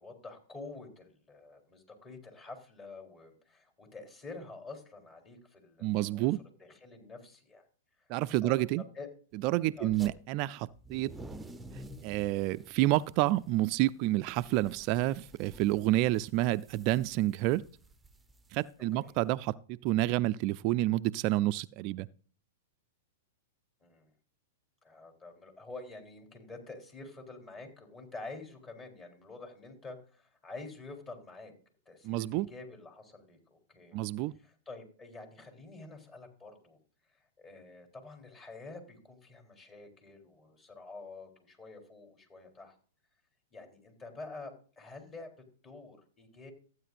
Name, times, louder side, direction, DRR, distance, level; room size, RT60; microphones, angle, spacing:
voice 1, 0.0-6.3 6.6-7.7 8.0-8.1 8.4-8.7 9.0-9.1 9.8-10.1 18.8-19.2 23.8-24.1 24.8-31.5 31.9-34.0 34.4-36.8 37.1-42.8 43.5-45.3 45.6-46.5, left 3 dB, 25° left, 3.6 m, -48 dB
voice 2, 5.8-6.4 8.1-8.8 9.4-11.1 11.7-17.6 18.5-22.1 32.0-32.5 33.9-34.3, right 16 dB, 45° right, 0.3 m, -29 dB
sound 1, 9.8-10.1 10.7-19.2, right 1 dB, 10° right, 0.8 m, -51 dB
14.5 x 9.4 x 2.5 m
hypercardioid pair, 115°, 0 cm